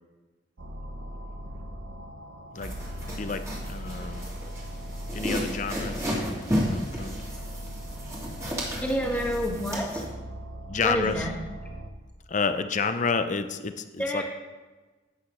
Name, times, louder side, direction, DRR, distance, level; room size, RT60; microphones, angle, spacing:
sound 1, 0.6-11.9, equal, 75° right, 0.9 m, -39 dB
sound 2, 2.6-10.1, equal, 15° right, 2.2 m, -33 dB
voice 1, 3.2-4.3 5.1-7.2 10.7-11.1 12.3-14.2, left 5 dB, 40° left, 10 dB, 0.6 m, -30 dB
voice 2, 8.8-10.0 10.8-11.4 14.0-14.2, equal, 10° left, 0 dB, 1.4 m, -28 dB
11.5 x 8.4 x 3.1 m, 1.2 s
head